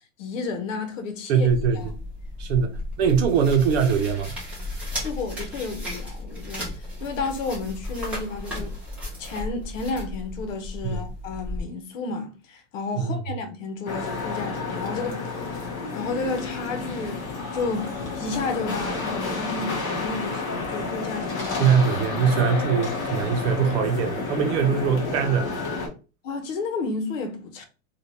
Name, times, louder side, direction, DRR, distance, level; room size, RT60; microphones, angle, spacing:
voice 1, 0.2-1.5 1.7-1.9 2.5-2.7 5.0-6.7 7.0-8.8 9.2-17.2 17.5-21.7 26.2-27.6, left 3 dB, 70° left, 1.0 m, -32 dB
voice 2, 1.3-1.9 2.4-4.3 10.9-11.1 13.0-13.2 21.6-25.5, right 6 dB, 50° right, 0.8 m, -22 dB
sound 1, 1.5-11.6, left 1 dB, 5° right, 0.6 m, -34 dB
sound 2, 13.9-25.9, left 4 dB, 30° left, 0.8 m, -30 dB
3.4 x 2.4 x 2.7 m
supercardioid pair, 160°, 40 cm